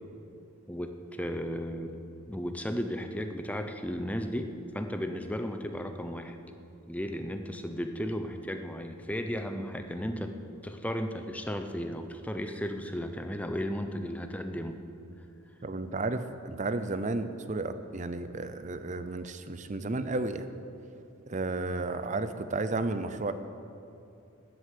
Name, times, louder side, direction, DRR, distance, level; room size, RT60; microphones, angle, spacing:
voice 1, 0.7-2.0 2.3-6.4 6.9-10.4 10.6-14.8, equal, 5° left, 6 dB, 0.6 m, -34 dB
voice 2, 15.6-20.5 21.3-23.3, right 2 dB, 35° right, 11 dB, 0.5 m, -33 dB
12.5 x 8.0 x 8.5 m, 2.7 s
head